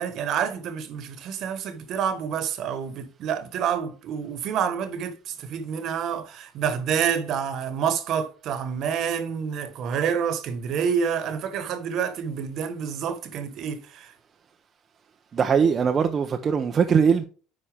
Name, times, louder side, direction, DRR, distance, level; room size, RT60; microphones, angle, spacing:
voice 1, 0.0-14.1, right 7 dB, 50° right, 1.2 m, -28 dB
voice 2, 15.3-17.2, right 6 dB, 30° right, 0.6 m, -21 dB
10.0 x 4.2 x 3.5 m
cardioid pair, 135°, 0 cm